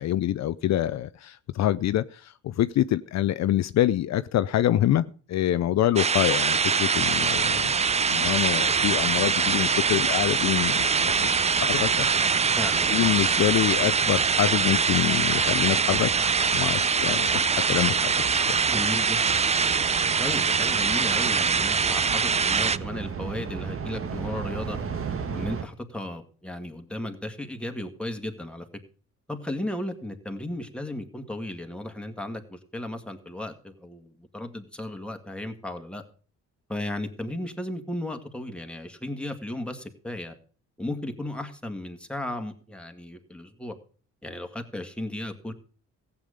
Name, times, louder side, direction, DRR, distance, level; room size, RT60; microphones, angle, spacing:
voice 1, 0.0-11.4 11.7-12.1 12.9-16.1 16.5-18.5, left 12 dB, 65° left, 0.6 m, -26 dB
sound 1, 6.0-22.8, right 5 dB, 20° right, 0.5 m, -23 dB
sound 2, 6.9-25.6, right 6 dB, 45° right, 1.5 m, -36 dB
voice 2, 12.6-13.2 18.7-19.3 20.2-24.8 25.3-28.7 29.3-36.0 36.7-40.4 40.8-43.8 44.2-45.5, left 1 dB, 5° left, 2.0 m, -35 dB
15.0 x 8.4 x 5.1 m
cardioid pair, 90°, 30 cm